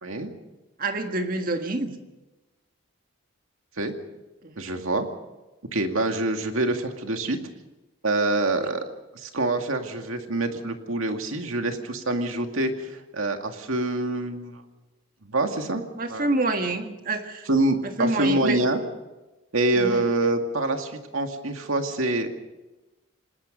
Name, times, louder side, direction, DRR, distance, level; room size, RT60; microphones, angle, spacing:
voice 1, 0.8-2.0 4.4-4.6 8.6-8.7 16.0-17.5 17.8-18.6 19.8-20.0, right 2 dB, 40° right, 6 dB, 1.7 m, -27 dB
voice 2, 4.6-5.1 5.7-7.4 8.0-8.8 9.2-14.6 15.2-16.3 17.5-18.8 19.5-22.3, right 2 dB, 75° right, 5 dB, 2.2 m, -26 dB
28.0 x 19.5 x 5.4 m, 1.1 s
head